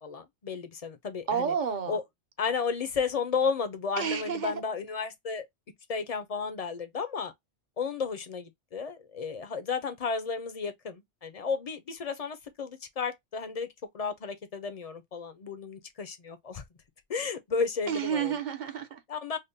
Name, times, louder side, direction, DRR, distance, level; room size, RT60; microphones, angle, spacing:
voice 1, 0.0-1.5 1.9-2.0 2.4-5.5 5.9-7.3 7.8-13.7 13.9-16.6 17.1-18.3 19.1-19.4, left 5 dB, 50° left, 0.4 m, -33 dB
voice 2, 1.3-2.0 4.0-4.6 17.9-19.0, right 7 dB, 50° right, 0.6 m, -30 dB
4.9 x 2.1 x 2.6 m
omnidirectional pair, 1.2 m